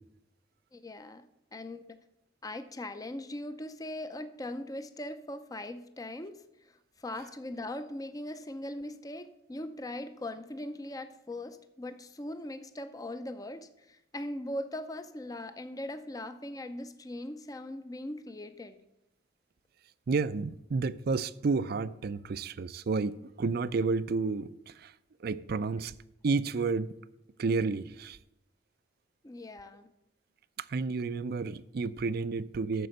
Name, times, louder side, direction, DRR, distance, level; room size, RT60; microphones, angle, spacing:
voice 1, 0.7-2.0 2.4-6.4 7.0-18.8 29.2-29.9, left 1 dB, 20° left, 0.5 m, -40 dB
voice 2, 20.1-24.9 25.2-25.9 26.2-26.9 27.4-28.2 30.6-32.9, right 4 dB, 55° right, 0.4 m, -31 dB
9.2 x 6.9 x 6.4 m
head